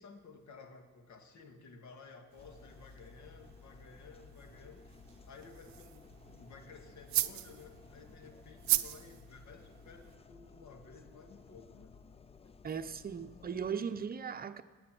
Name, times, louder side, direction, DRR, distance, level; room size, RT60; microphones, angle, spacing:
voice 1, 0.0-5.0 5.3-6.0 6.3-12.0 13.7-13.8 14.5-14.6, left 4 dB, 70° left, 5 dB, 1.9 m, -54 dB
sound 1, 2.3-10.2, right 14 dB, 70° right, 0.6 m, -39 dB
sound 2, 2.4-13.7, left 5 dB, 20° left, 0.4 m, -57 dB
voice 2, 12.6-14.6, right 7 dB, 30° right, 9 dB, 0.7 m, -38 dB
18.0 x 8.5 x 6.1 m, 1.4 s
cardioid pair, 110°, 29 cm